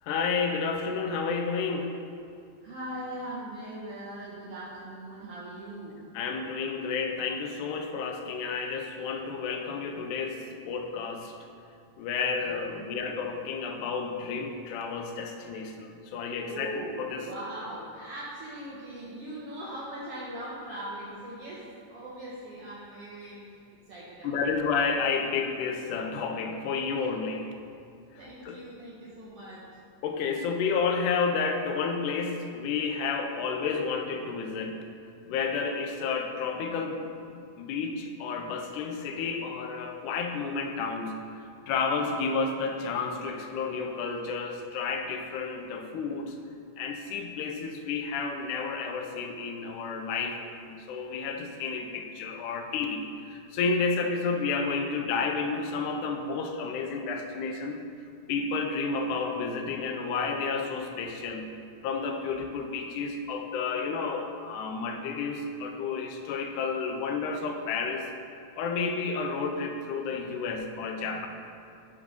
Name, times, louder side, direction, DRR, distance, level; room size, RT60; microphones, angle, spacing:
voice 1, 0.0-2.0 6.1-11.3 12.0-17.3 24.2-27.5 28.4-28.6 30.0-34.8 35.3-41.2 41.7-46.4 46.8-57.8 58.3-61.5 61.8-68.1 68.6-71.3, left 5 dB, 85° left, 4 dB, 2.0 m, -31 dB
voice 2, 2.6-6.0 12.4-13.2 16.5-23.4 23.9-24.6 28.2-29.7, right 1 dB, 75° right, -7 dB, 1.4 m, -40 dB
7.9 x 3.6 x 5.1 m, 2.4 s
omnidirectional pair, 3.6 m